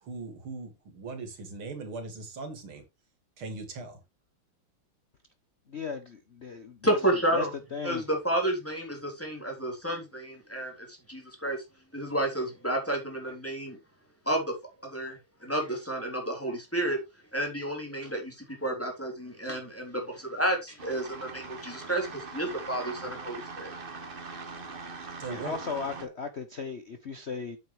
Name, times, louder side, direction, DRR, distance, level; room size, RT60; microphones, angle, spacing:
voice 1, 0.0-2.8 3.4-4.0 25.2-25.6 26.0-26.2, right 3 dB, 85° right, 3.3 m, -39 dB
voice 2, 5.7-6.8 7.3-7.4 7.7-8.0 25.4-27.6, left 5 dB, 45° left, 0.9 m, -36 dB
voice 3, 6.8-7.5 7.8-11.6 11.9-13.8 14.3-14.6 14.8-17.0 17.3-23.7, right 1 dB, 5° left, 3.5 m, -31 dB
sound 1, 20.8-26.0, right 4 dB, 30° right, 1.2 m, -41 dB
8.9 x 8.2 x 3.3 m
omnidirectional pair, 2.3 m